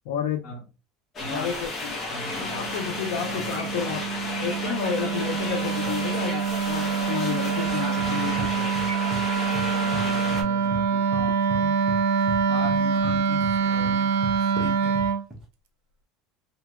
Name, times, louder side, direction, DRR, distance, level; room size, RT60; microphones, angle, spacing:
voice 1, 0.1-0.5 1.3-2.0 2.4-4.0 4.4-8.7, left 8 dB, 80° left, 0.4 m, -31 dB
voice 2, 1.2-1.5 2.1-2.7 3.3-3.9 5.8-5.9 8.0-8.7 9.8-11.8 12.5-15.1, left 1 dB, 40° left, 1.3 m, -39 dB
sound 1, 1.2-10.4, left 2 dB, 25° left, 0.8 m, -33 dB
Wind instrument woodwind instrument, 2.3-15.2, right 6 dB, 90° right, 0.5 m, -25 dB
sound 2, 7.6-9.2 9.5-10.8 11.1-15.4, right 2 dB, 15° right, 0.9 m, -36 dB
2.8 x 2.7 x 2.3 m
cardioid pair, 155°, 0 cm